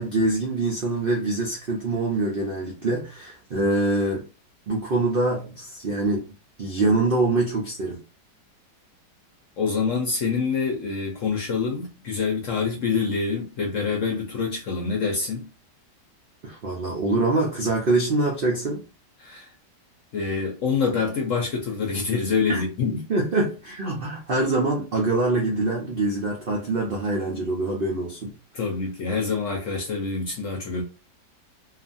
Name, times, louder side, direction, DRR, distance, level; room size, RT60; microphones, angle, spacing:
voice 1, 0.0-4.2 4.7-6.3 6.6-8.0 16.4-18.9 22.5-22.6 23.1-28.3, right 2 dB, 80° right, 0.5 m, -24 dB
voice 2, 9.6-15.5 19.2-19.5 20.1-23.0 28.5-30.8, left 5 dB, 60° left, 0.8 m, -26 dB
2.8 x 2.4 x 2.5 m
omnidirectional pair, 1.9 m